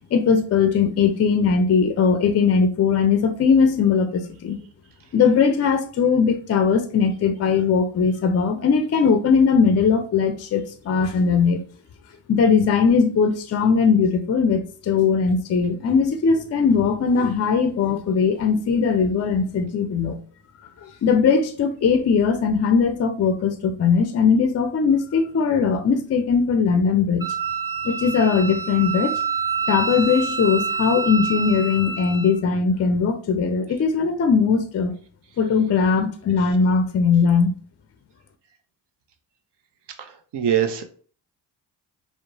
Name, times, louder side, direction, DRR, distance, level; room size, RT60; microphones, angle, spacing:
voice 1, 0.1-4.6 5.1-11.6 12.3-20.2 20.8-27.3 27.8-29.1 29.7-34.9 35.4-37.5, left 5 dB, 35° left, 0.4 m, -19 dB
Wind instrument woodwind instrument, 27.2-32.3, right 5 dB, 10° right, 0.9 m, -27 dB
voice 2, 40.0-40.8, right 9 dB, 55° right, 0.6 m, -23 dB
2.9 x 2.1 x 2.6 m
supercardioid pair, 50°, 50 cm